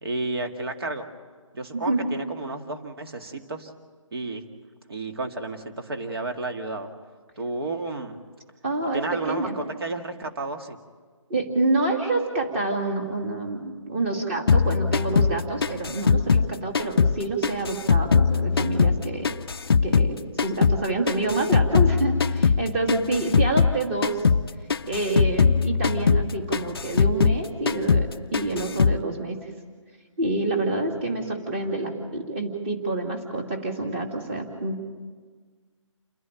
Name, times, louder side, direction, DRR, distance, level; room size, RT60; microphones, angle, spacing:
voice 1, 0.0-1.1 1.5-3.7 4.1-4.4 4.9-6.9 7.4-8.2 8.9-10.8, right 2 dB, 50° right, 5 dB, 2.1 m, -32 dB
voice 2, 1.7-2.1 8.6-9.6 11.3-19.3 19.8-24.2 24.9-29.4 30.2-34.8, right 2 dB, 20° right, 2 dB, 2.5 m, -27 dB
sound 1, 14.5-17.2 17.4-20.1 20.4-23.8 24.0-24.4 24.7-27.4 27.7-28.1 28.3-29.0, left 5 dB, 45° left, 0.5 m, -21 dB
29.0 x 11.0 x 9.0 m, 1.5 s
hypercardioid pair, 165°, 17 cm